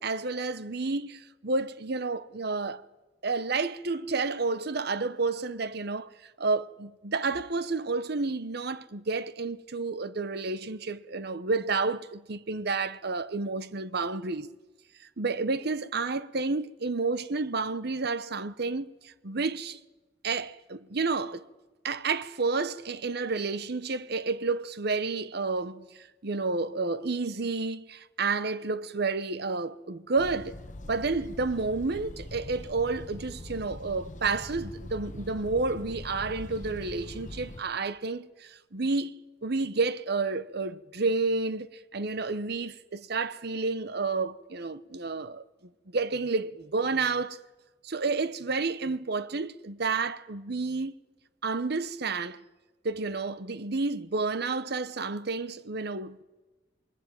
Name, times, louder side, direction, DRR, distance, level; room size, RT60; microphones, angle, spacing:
voice 1, 0.0-2.8 3.2-14.5 15.2-19.8 20.2-21.4 21.8-30.5 30.9-45.4 45.9-47.4 47.8-50.9 51.4-52.4 52.8-56.2, right 3 dB, 60° right, 1.0 m, -30 dB
sound 1, 30.2-37.6, left 1 dB, 40° left, 1.2 m, -42 dB
27.5 x 21.5 x 9.0 m
head